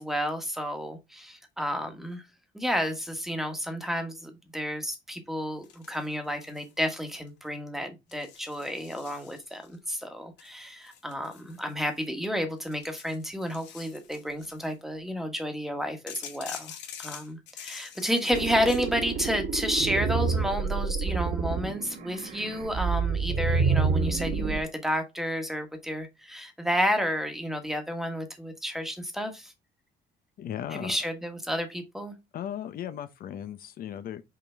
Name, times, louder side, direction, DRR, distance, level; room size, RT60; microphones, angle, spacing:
voice 1, 0.0-2.2 2.5-29.5 30.7-32.1, equal, ahead, 1.4 m, -31 dB
sound 1, 5.6-6.7 7.0-7.5 8.1-9.7 10.4-12.1 12.6-14.7 16.1-18.9, left 8 dB, 90° left, 2.1 m, -46 dB
sound 2, 18.3-24.6, right 5 dB, 60° right, 1.0 m, -28 dB
voice 2, 30.4-31.0 32.3-34.2, left 10 dB, 55° left, 0.7 m, -36 dB
5.7 x 5.1 x 3.4 m
cardioid pair, 145°, 18 cm